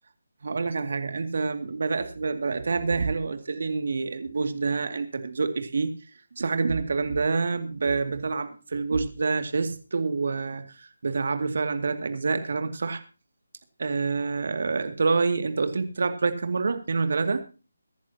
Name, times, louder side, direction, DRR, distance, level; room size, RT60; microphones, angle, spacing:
voice 1, 0.4-5.9 6.4-13.0 13.8-17.4, right 4 dB, 55° right, 8 dB, 2.2 m, -27 dB
23.5 x 11.0 x 2.9 m, 0.33 s
figure-of-eight pair, 155°, 0 cm